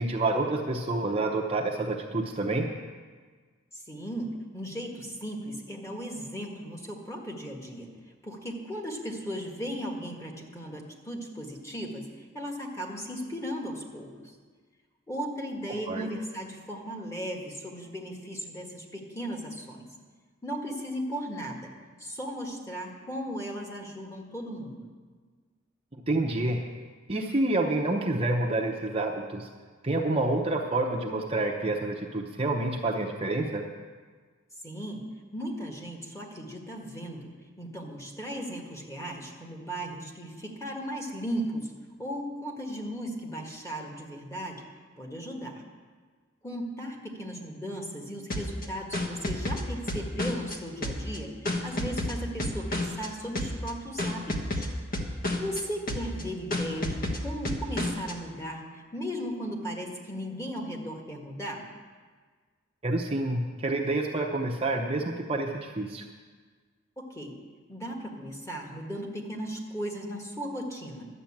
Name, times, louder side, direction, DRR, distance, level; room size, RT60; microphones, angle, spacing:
voice 1, 0.0-2.7 15.9-16.1 26.1-26.6 27.1-29.5 29.8-33.6 62.8-66.0, right 2 dB, 30° right, 0 dB, 0.8 m, -28 dB
voice 2, 3.9-7.9 8.2-12.0 12.3-14.1 15.1-19.9 20.4-21.7 22.0-24.8 34.6-35.0 35.3-37.3 37.6-41.7 42.0-44.6 45.0-45.6 46.4-54.7 55.4-61.6 67.0-67.3 67.7-71.1, equal, 15° left, 0 dB, 1.7 m, -36 dB
sound 1, 48.3-50.6 50.8-53.1 53.4-53.7 54.0-55.6 55.9-56.2 56.5-58.1, left 1 dB, 45° left, 1.3 m, -31 dB
12.0 x 6.8 x 8.7 m, 1.5 s
head